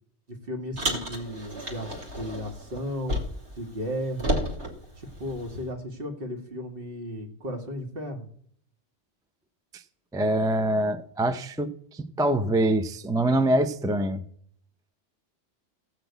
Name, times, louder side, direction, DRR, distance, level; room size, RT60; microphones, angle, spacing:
voice 1, 0.3-1.9 2.2-3.2 3.6-4.4 5.0-8.3, equal, 55° right, 4 dB, 1.8 m, -34 dB
Car, 0.8-3.6 3.8-5.6, equal, 80° right, 2.4 m, -32 dB
voice 2, 10.1-14.2, right 1 dB, 5° right, 9 dB, 0.4 m, -25 dB
15.5 x 6.0 x 8.1 m, 0.63 s
omnidirectional pair, 1.2 m